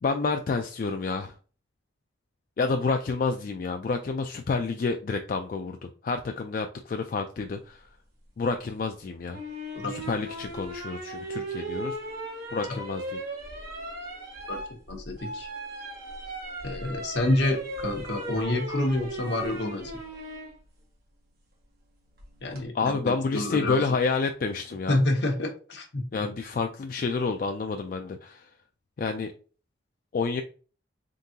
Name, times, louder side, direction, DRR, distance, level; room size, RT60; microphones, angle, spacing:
voice 1, 0.0-1.3 2.6-7.8 8.4-9.4 9.9-12.0 12.5-13.2 22.7-25.0 26.1-28.5 29.0-29.3 30.1-30.4, left 4 dB, 45° left, 5 dB, 0.3 m, -29 dB
sound 1, 9.3-20.5 22.2-22.6, right 1 dB, 55° right, 1.5 m, -37 dB
voice 2, 14.9-15.5 16.6-19.9 22.4-23.8 24.9-26.3, left 1 dB, 65° left, 3 dB, 0.9 m, -28 dB
3.8 x 3.6 x 2.8 m, 0.38 s
head